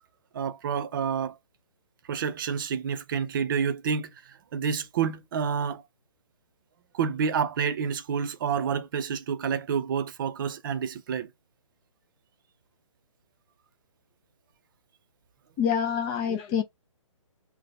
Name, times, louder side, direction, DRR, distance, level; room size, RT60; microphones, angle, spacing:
voice 1, 0.3-1.4 2.1-5.8 6.9-11.3, right 6 dB, 40° right, 0.5 m, -29 dB
voice 2, 15.6-16.6, left 7 dB, 15° left, 0.3 m, -26 dB
2.7 x 2.1 x 4.1 m
figure-of-eight pair, 140°, 17 cm